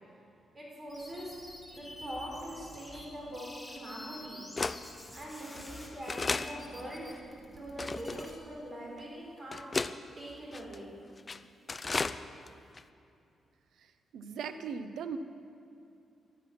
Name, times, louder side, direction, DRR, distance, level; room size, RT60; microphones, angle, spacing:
voice 1, 0.5-1.3 1.7-4.8 5.1-9.7 10.2-10.9, equal, 25° right, -3 dB, 4.0 m, -43 dB
sound 1, 0.9-3.1 3.3-8.3, left 1 dB, 5° left, 2.1 m, -49 dB
sound 2, 2.9-3.0 3.8-3.9 4.6-4.8 5.5-5.7 6.1-6.5 7.1-7.2 7.8-8.3 9.0-9.1 9.5-9.9 10.5-10.8 11.2-11.4 11.7-12.2 12.5-12.6 12.7-12.8, left 3 dB, 25° left, 0.4 m, -33 dB
voice 2, 14.1-15.2, right 6 dB, 85° right, 10 dB, 0.8 m, -38 dB
14.0 x 12.0 x 5.9 m, 2.6 s
cardioid pair, 130°, 0 cm